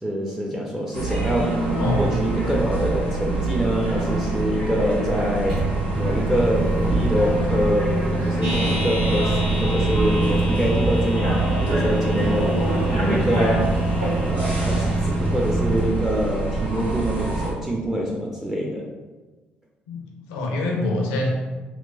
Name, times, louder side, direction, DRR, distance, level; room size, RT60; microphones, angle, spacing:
voice 1, 0.0-1.5 2.0-5.6 6.0-7.9 8.2-12.6 12.9-13.7 14.3-18.9, equal, 10° right, -2 dB, 0.4 m, -25 dB
sound 1, 0.9-17.5, right 2 dB, 90° right, 0.4 m, -26 dB
Microwave oven, 5.5-15.8, right 2 dB, 65° right, 1.0 m, -25 dB
sound 2, 8.4-14.3, left 1 dB, 40° right, 0.8 m, -35 dB
voice 2, 19.9-21.3, left 2 dB, 70° left, 0 dB, 0.4 m, -25 dB
2.9 x 2.1 x 2.3 m, 1.3 s
figure-of-eight pair, 45°, 5 cm